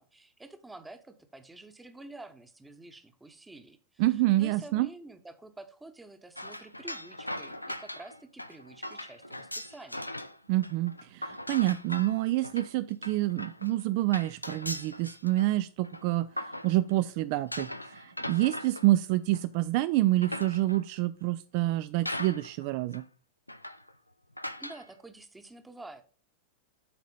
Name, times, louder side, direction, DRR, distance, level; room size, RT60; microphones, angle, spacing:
voice 1, 0.0-10.1 24.6-26.0, right 2 dB, 10° right, 8 dB, 0.9 m, -49 dB
voice 2, 4.0-4.9 10.5-23.0, right 16 dB, 45° right, 15 dB, 0.3 m, -27 dB
sound 1, 6.4-10.4 10.6-17.0 17.5-19.5 20.0-21.0 21.6-21.7 22.1-22.7 22.9-23.0 23.5-23.9 24.4-24.8, left 1 dB, 85° left, 0.4 m, -40 dB
8.5 x 4.1 x 5.3 m, 0.39 s
figure-of-eight pair, 90°, 0 cm